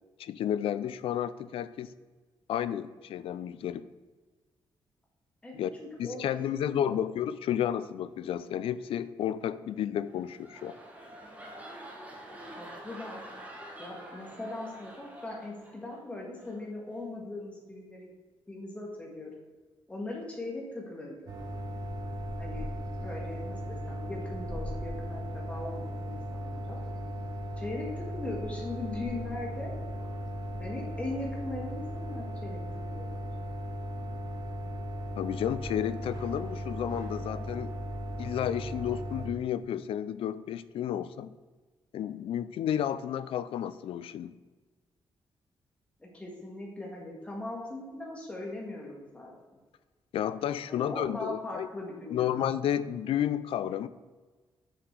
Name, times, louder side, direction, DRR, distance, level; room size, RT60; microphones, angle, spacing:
voice 1, 0.2-1.9 2.5-3.8 5.5-5.7 6.0-10.7 35.2-37.7 38.2-41.3 41.9-44.3 50.1-51.7 52.1-53.9, left 10 dB, 80° left, 15 dB, 0.4 m, -32 dB
voice 2, 5.4-6.2 6.5-7.0 12.3-13.2 13.8-18.1 18.5-19.3 19.9-21.4 22.4-22.7 23.0-26.8 27.6-29.7 30.6-32.6 32.9-33.3 46.0-49.3 50.7-52.3, left 2 dB, 15° left, -2 dB, 1.7 m, -40 dB
sound 1, 10.0-16.0 16.4-16.7, right 1 dB, 15° right, 1.3 m, -47 dB
sound 2, 21.3-39.3, equal, 45° right, 1.1 m, -37 dB
6.5 x 5.9 x 4.6 m, 1.3 s
wide cardioid pair, 175°, 9 cm